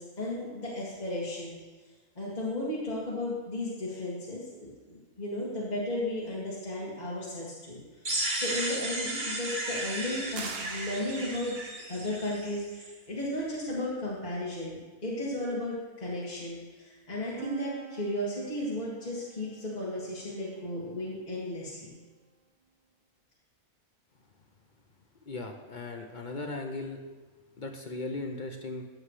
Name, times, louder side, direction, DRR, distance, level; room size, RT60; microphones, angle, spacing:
voice 1, 0.0-1.6 2.2-8.0 8.4-11.6 11.9-22.0, left 1 dB, 30° left, -8 dB, 2.2 m, -35 dB
sound 1, 8.0-12.9, right 1 dB, 35° right, 1.3 m, -34 dB
sound 2, 10.3-11.7, right 5 dB, 50° right, 0.9 m, -42 dB
sound 3, 17.4-21.1, right 4 dB, 85° right, 1.6 m, -46 dB
voice 2, 25.2-27.0 27.6-28.8, left 2 dB, 45° left, 3 dB, 0.7 m, -37 dB
15.0 x 7.8 x 3.3 m, 1.3 s
omnidirectional pair, 1.6 m